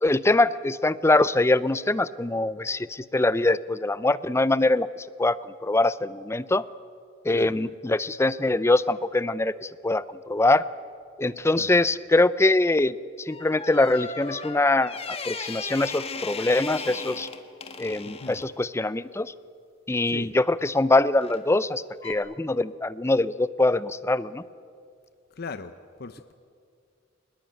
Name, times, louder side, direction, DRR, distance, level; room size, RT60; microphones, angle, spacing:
voice 1, 0.0-4.9 5.2-6.6 7.2-10.7 11.2-17.3 17.8-19.3 19.9-24.4, left 2 dB, 15° left, 17 dB, 0.5 m, -23 dB
sound 1, 13.3-18.5 21.2-21.5 22.0-22.1, left 4 dB, 30° left, 1.7 m, -37 dB
voice 2, 18.1-18.4 20.0-20.3 25.4-25.7 26.0-26.3, left 4 dB, 55° left, 11 dB, 0.7 m, -38 dB
22.0 x 20.5 x 9.0 m, 2.3 s
head